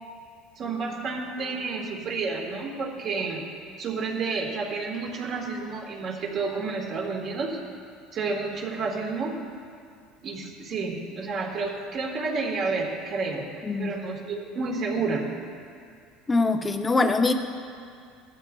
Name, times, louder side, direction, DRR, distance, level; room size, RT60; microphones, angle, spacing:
voice 1, 0.6-3.4 3.8-7.6 8.1-9.4 10.2-13.5 13.8-15.3, right 4 dB, 45° right, 0 dB, 1.9 m, -30 dB
voice 2, 16.3-17.3, left 3 dB, 15° left, 6 dB, 0.8 m, -23 dB
16.5 x 12.5 x 2.5 m, 2.3 s
supercardioid pair, 115°, 0 cm